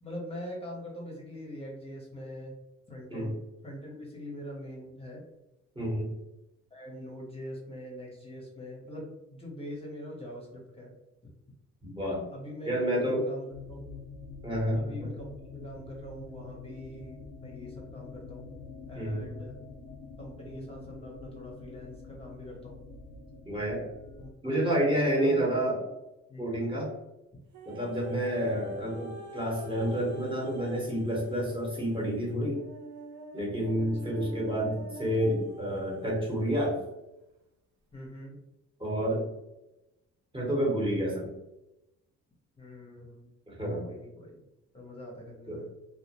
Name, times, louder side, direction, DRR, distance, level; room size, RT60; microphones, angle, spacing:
voice 1, 0.0-2.5 2.9-3.4 3.6-5.2 6.7-10.9 12.3-13.9 14.7-18.5 18.9-19.6 20.2-22.8 24.2-24.3 24.6-25.9 26.3-26.8 28.4-28.8 33.8-34.2 37.9-38.4 42.6-43.3 43.8-44.4 44.7-45.7, equal, 20° left, -2 dB, 0.8 m, -43 dB
voice 2, 5.7-6.1 11.8-12.3 12.7-13.2 14.4-15.1 18.9-19.3 23.4-23.8 24.4-25.8 26.4-26.9 27.7-32.6 33.3-36.8 38.8-39.2 40.3-41.3 43.5-43.8 45.5-45.6, equal, 15° right, -3 dB, 1.0 m, -29 dB
sound 1, 13.5-24.3, left 4 dB, 80° left, 0.6 m, -46 dB
sound 2, 27.5-36.6 37.3-37.4, right 3 dB, 75° right, 0.6 m, -45 dB
2.3 x 2.1 x 2.8 m, 0.95 s
cardioid pair, 90°, 30 cm